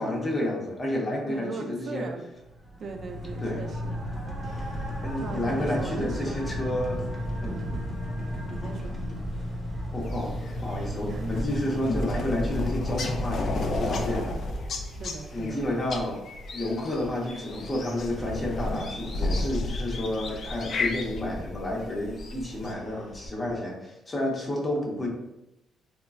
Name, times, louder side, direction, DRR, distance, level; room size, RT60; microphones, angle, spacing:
voice 1, 0.0-2.1 3.4-3.6 5.0-7.1 7.4-7.7 9.9-14.3 15.3-16.2 16.5-25.1, left 1 dB, 25° left, -1 dB, 0.7 m, -30 dB
voice 2, 1.3-2.3 2.8-4.0 5.2-6.5 7.4-7.8 8.5-9.0 11.1-11.4 13.8-14.4 14.9-15.6, right 4 dB, 55° right, 5 dB, 0.3 m, -39 dB
sound 1, 2.5-13.7, equal, 15° right, 0.8 m, -34 dB
sound 2, 4.4-23.3, equal, 85° left, 0.9 m, -41 dB
sound 3, 10.0-22.7, left 2 dB, 60° left, 0.3 m, -33 dB
3.1 x 2.1 x 2.3 m, 0.92 s
cardioid pair, 90°, 0 cm